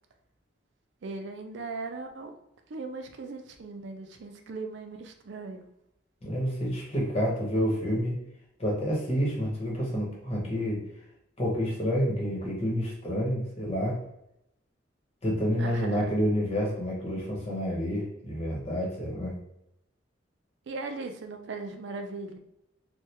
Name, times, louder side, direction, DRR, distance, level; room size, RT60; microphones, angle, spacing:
voice 1, 1.0-2.3 2.7-5.7 15.6-16.2 20.7-22.4, right 3 dB, 70° right, 5 dB, 0.4 m, -38 dB
voice 2, 6.2-8.2 8.6-10.8 11.4-14.0 15.2-19.3, equal, 35° left, -3 dB, 1.0 m, -29 dB
3.3 x 2.3 x 2.9 m, 0.79 s
head